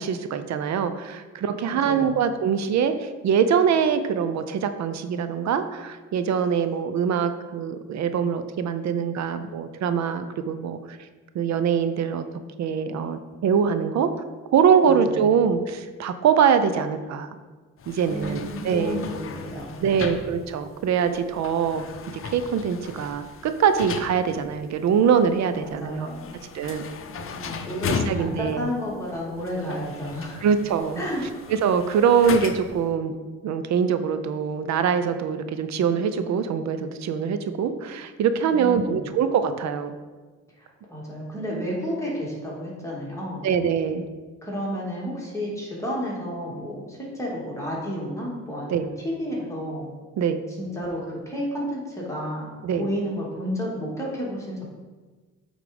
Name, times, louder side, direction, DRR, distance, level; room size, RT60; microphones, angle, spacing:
voice 1, 0.0-11.0 11.3-12.2 12.6-14.1 14.5-17.3 17.9-19.1 19.8-21.9 22.2-26.1 26.5-26.9 27.7-28.7 30.4-31.0 31.5-33.1 33.4-39.9 43.4-44.1 48.7-48.8 50.2-50.4 52.6-52.9, right 7 dB, 65° right, 10 dB, 0.6 m, -23 dB
voice 2, 1.8-2.2 14.8-15.2 18.1-20.1 25.6-26.4 26.8-30.4 31.0-31.2 38.5-39.0 40.6-43.4 44.4-49.9 50.6-54.6, equal, 10° left, -5 dB, 2.3 m, -31 dB
sound 1, 17.8-32.9, left 6 dB, 45° left, 0.7 m, -37 dB
8.2 x 3.7 x 5.2 m, 1.3 s
cardioid pair, 90°, 30 cm